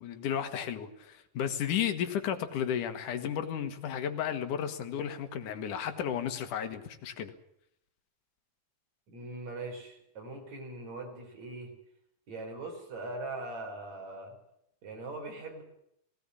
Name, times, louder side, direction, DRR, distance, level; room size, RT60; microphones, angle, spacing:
voice 1, 0.0-7.3, left 9 dB, 75° left, 9 dB, 2.8 m, -33 dB
voice 2, 9.1-11.7 12.3-14.4 14.8-15.6, right 2 dB, 55° right, 2 dB, 5.8 m, -41 dB
18.0 x 17.0 x 9.8 m, 0.76 s
omnidirectional pair, 3.8 m